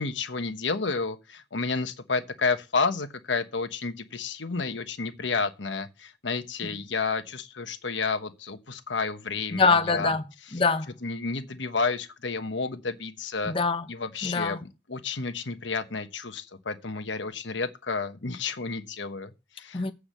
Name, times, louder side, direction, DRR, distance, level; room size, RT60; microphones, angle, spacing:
voice 1, 0.0-10.1 11.0-13.5 13.9-19.8, left 4 dB, 90° left, 1.2 m, -31 dB
voice 2, 9.5-10.2 10.5-10.9 13.4-13.9 14.2-14.6 19.7-19.9, left 4 dB, 30° left, 0.8 m, -24 dB
8.4 x 4.9 x 7.4 m
head